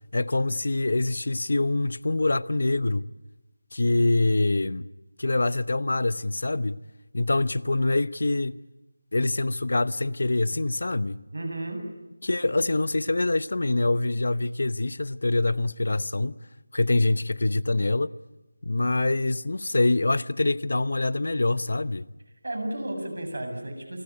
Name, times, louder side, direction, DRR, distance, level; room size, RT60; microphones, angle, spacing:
voice 1, 0.1-3.1 3.7-4.9 5.2-6.8 7.1-8.5 9.1-11.2 12.2-16.4 16.7-18.1 18.6-22.1, left 2 dB, 60° left, 0.8 m, -25 dB
voice 2, 11.3-11.8 22.4-24.0, right 1 dB, 70° right, 7.7 m, -33 dB
27.5 x 19.0 x 9.7 m
figure-of-eight pair, 175°, 0 cm